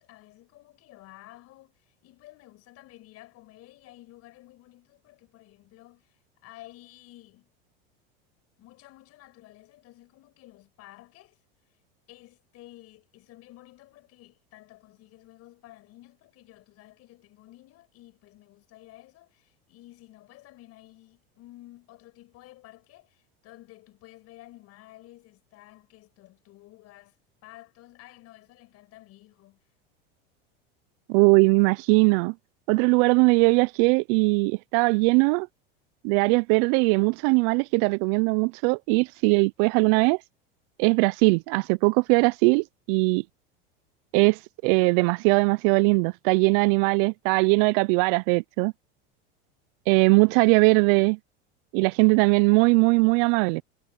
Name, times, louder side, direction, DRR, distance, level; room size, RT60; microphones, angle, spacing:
voice 1, 0.0-7.5 8.6-11.4 12.1-27.2 27.4-29.6, left 17 dB, 50° left, 7.1 m, -52 dB
voice 2, 31.1-32.3 32.7-35.5 36.0-40.2 40.8-43.2 44.1-48.7 49.9-51.2 51.7-53.6, right 30 dB, 60° right, 0.5 m, -20 dB
supercardioid pair, 105°, 30 cm